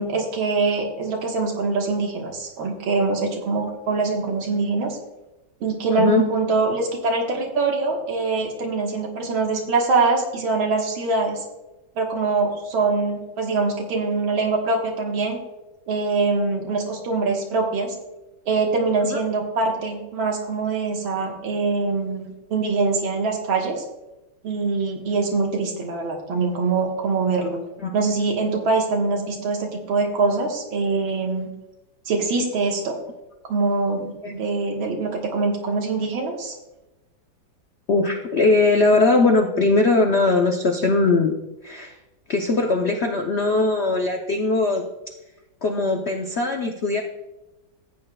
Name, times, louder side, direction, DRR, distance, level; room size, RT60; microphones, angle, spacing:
voice 1, 0.0-5.0 5.6-11.4 12.0-15.4 15.9-18.0 18.5-23.8 24.4-27.6 27.9-31.5 32.1-33.0 33.5-36.5, right 3 dB, 90° right, 1 dB, 2.2 m, -23 dB
voice 2, 5.9-6.3 19.0-19.2 27.8-27.9 34.2-34.3 37.9-41.3 41.6-42.0 42.3-44.8 45.6-47.0, left 3 dB, 80° left, 3 dB, 0.5 m, -20 dB
14.5 x 8.8 x 2.3 m, 1.0 s
omnidirectional pair, 2.1 m